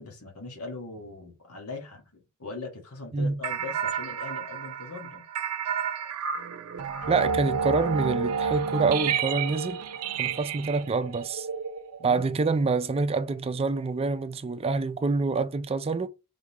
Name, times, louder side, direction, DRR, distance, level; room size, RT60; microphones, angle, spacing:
voice 1, 0.0-5.3 12.0-12.2, left 3 dB, 80° left, 1.5 m, -40 dB
sound 1, 3.4-12.3, right 6 dB, 75° right, 0.6 m, -30 dB
voice 2, 7.1-9.8 10.2-11.5 12.0-16.1, right 4 dB, 25° right, 0.4 m, -26 dB
3.7 x 3.6 x 2.9 m
head